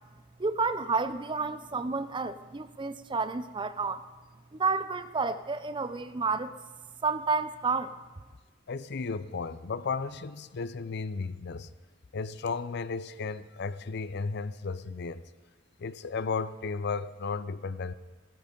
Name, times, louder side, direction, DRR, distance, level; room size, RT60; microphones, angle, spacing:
voice 1, 0.4-4.1 4.5-6.6 7.0-7.9, right 4 dB, 25° right, 0.6 m, -30 dB
voice 2, 8.7-11.7 12.1-15.2 15.8-17.9, left 4 dB, 55° left, 0.5 m, -34 dB
17.0 x 13.5 x 5.2 m
head